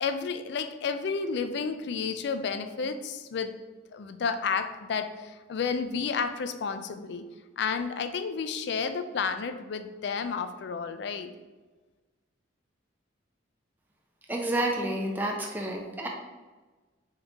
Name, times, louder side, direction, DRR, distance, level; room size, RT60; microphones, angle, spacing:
voice 1, 0.0-3.5 3.9-7.3 7.6-11.3, left 5 dB, 60° left, 10 dB, 0.4 m, -31 dB
voice 2, 14.3-16.1, right 1 dB, 10° right, 0 dB, 0.4 m, -29 dB
4.0 x 3.7 x 3.5 m, 1.3 s
head